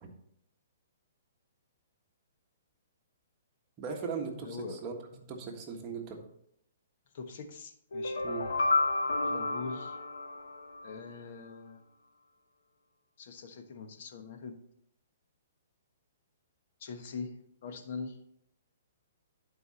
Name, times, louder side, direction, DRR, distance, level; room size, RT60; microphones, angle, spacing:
voice 1, 3.8-6.2 8.2-8.5, right 5 dB, 25° right, 1 dB, 1.5 m, -39 dB
voice 2, 4.4-4.8 7.1-8.2 9.2-10.0 10.8-11.8 13.2-14.6 16.8-17.3 17.6-18.2, left 4 dB, 50° left, 6 dB, 1.2 m, -42 dB
sound 1, 7.9-11.0, left 3 dB, 85° left, 1.1 m, -31 dB
11.0 x 4.8 x 4.2 m, 0.74 s
hypercardioid pair, 155°, 0 cm